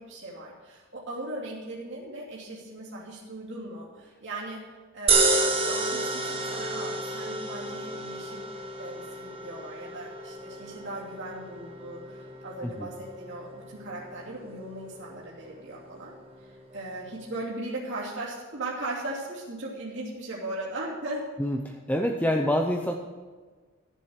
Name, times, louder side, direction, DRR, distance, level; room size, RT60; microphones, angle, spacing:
voice 1, 0.0-4.6 4.9-5.1 5.7-8.4 8.8-16.1 16.7-21.2, right 2 dB, 55° right, -6 dB, 2.9 m, -38 dB
sound 1, 5.1-17.4, right 3 dB, 25° right, 1.4 m, -31 dB
voice 2, 21.4-22.9, equal, 5° left, 2 dB, 0.6 m, -26 dB
14.0 x 7.5 x 6.6 m, 1.4 s
head